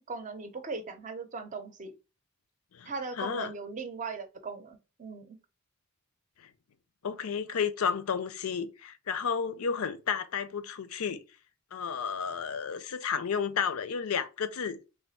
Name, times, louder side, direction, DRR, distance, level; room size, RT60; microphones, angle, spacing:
voice 1, 0.1-1.9 2.9-5.4, right 4 dB, 35° right, 0.6 m, -39 dB
voice 2, 2.7-3.5 7.0-11.2 11.7-14.8, left 6 dB, 75° left, 0.5 m, -32 dB
3.4 x 2.5 x 4.1 m
head